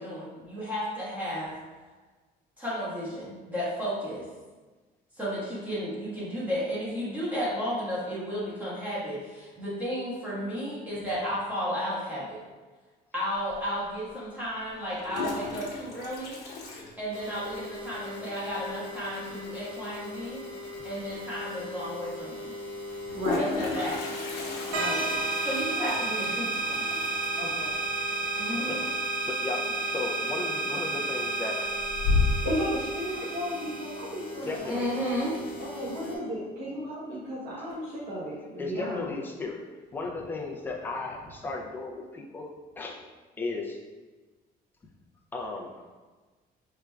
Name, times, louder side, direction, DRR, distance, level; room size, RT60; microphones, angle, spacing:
voice 1, 0.0-1.5 2.6-4.3 5.2-12.5 13.1-16.4 17.0-20.4 20.8-22.5 23.3-24.1 25.4-26.8 28.4-28.7 34.7-35.4, equal, 10° right, -9 dB, 1.2 m, -33 dB
Toilet flush, 13.5-13.6 14.8-17.6 17.9-18.0 18.3-18.4 18.6-19.0 20.8-20.9 21.2-21.3 22.8-29.5 29.8-30.3 30.7-31.2 31.6-32.6, left 3 dB, 80° left, 0.9 m, -33 dB
sound 1, 17.1-36.2, left 2 dB, 30° left, 1.0 m, -41 dB
voice 2, 23.1-23.5 24.7-25.1 27.3-27.8 28.5-28.9 32.4-35.0 35.6-39.1, equal, 80° right, -8 dB, 1.0 m, -34 dB
sound 2, 24.7-34.1, right 3 dB, 55° right, 0.6 m, -31 dB
voice 3, 29.2-31.9 34.4-34.9 38.6-39.6 39.9-43.0 43.4-43.8 45.3-45.9, left 3 dB, 10° left, 0 dB, 0.4 m, -35 dB
4.9 x 3.3 x 2.3 m, 1.3 s
cardioid pair, 175°, 17 cm